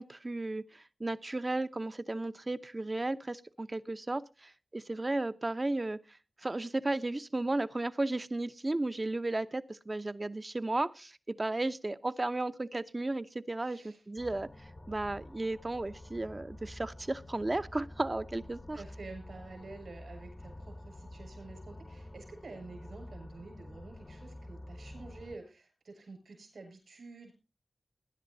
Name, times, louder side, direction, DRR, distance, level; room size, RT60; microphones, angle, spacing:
voice 1, 0.0-6.0 6.4-14.5 14.9-18.8, right 2 dB, 35° right, 12 dB, 0.8 m, -34 dB
voice 2, 13.6-14.0 18.7-27.3, right 3 dB, 80° right, 4 dB, 6.7 m, -49 dB
sound 1, 14.2-25.4, left 1 dB, 40° left, 1.0 m, -49 dB
20.0 x 10.5 x 2.7 m, 0.30 s
cardioid pair, 45°, 0 cm